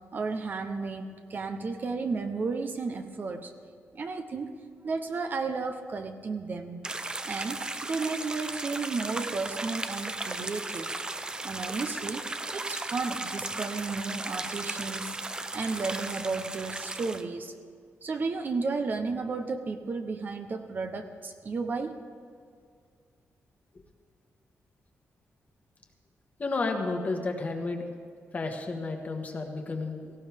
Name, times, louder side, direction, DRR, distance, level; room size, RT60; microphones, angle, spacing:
voice 1, 0.1-3.5 3.9-4.5 4.8-6.8 7.2-10.9 11.4-15.2 15.5-17.5 18.0-22.0, right 4 dB, 40° right, 7 dB, 0.8 m, -33 dB
sound 1, 6.8-17.2, right 2 dB, 15° right, 0.5 m, -36 dB
voice 2, 26.4-27.9 28.3-30.1, left 3 dB, 35° left, 3 dB, 1.4 m, -31 dB
17.5 x 16.5 x 3.5 m, 2.2 s
wide cardioid pair, 150°, 5 cm